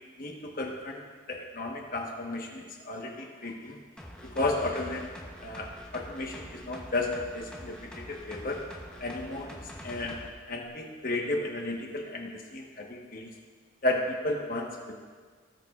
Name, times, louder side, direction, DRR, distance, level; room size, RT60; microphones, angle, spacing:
voice 1, 0.2-1.0 1.3-3.8 4.2-5.1 5.4-8.6 9.0-10.2 10.5-13.3 13.8-14.9, left 2 dB, 40° left, 1 dB, 1.2 m, -33 dB
sound 1, 4.0-10.3 10.7-10.8, equal, 5° left, 0.8 m, -46 dB
18.5 x 6.6 x 2.4 m, 1.6 s
head